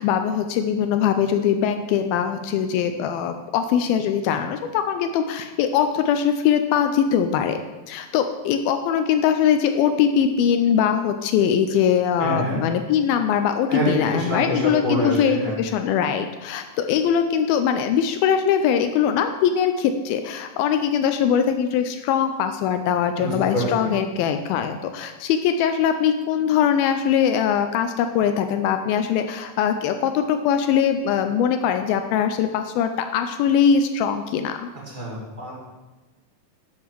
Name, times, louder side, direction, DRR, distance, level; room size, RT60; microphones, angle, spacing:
voice 1, 0.0-7.6 7.9-34.6, left 8 dB, 85° left, 7 dB, 2.1 m, -21 dB
voice 2, 12.2-12.6 13.7-15.6 23.2-23.9 34.9-35.5, equal, 15° right, -5 dB, 1.7 m, -26 dB
12.0 x 7.4 x 4.6 m, 1.2 s
omnidirectional pair, 4.8 m